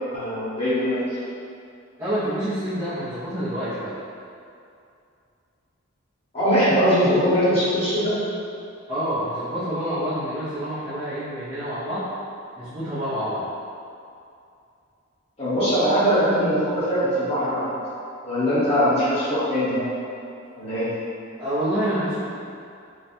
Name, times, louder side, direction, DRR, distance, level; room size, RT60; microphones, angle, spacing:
voice 1, 0.1-1.2 6.3-8.1 15.4-17.6 18.2-19.9 20.6-20.9, equal, 30° left, -13 dB, 1.3 m, -21 dB
voice 2, 2.0-3.9 8.9-12.1 12.6-13.4 21.4-22.2, equal, 15° right, -15 dB, 0.8 m, -27 dB
3.4 x 2.4 x 4.2 m, 2.5 s
head